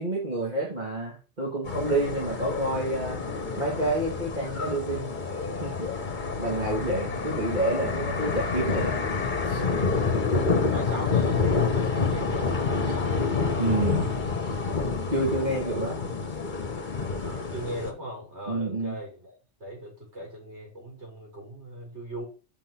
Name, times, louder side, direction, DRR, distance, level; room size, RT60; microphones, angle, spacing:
voice 1, 0.0-3.2 3.6-5.1 5.6-5.9 6.4-9.0 9.5-9.6 13.6-14.1 15.1-16.0 18.5-19.0, right 2 dB, 35° right, -3 dB, 2.3 m, -28 dB
sound 1, 1.7-17.9, left 4 dB, 40° left, 1.3 m, -28 dB
voice 2, 10.7-14.1 17.2-19.3 19.6-22.2, right 1 dB, 65° right, -2 dB, 5.5 m, -39 dB
6.6 x 6.2 x 6.1 m, 0.34 s
omnidirectional pair, 1.2 m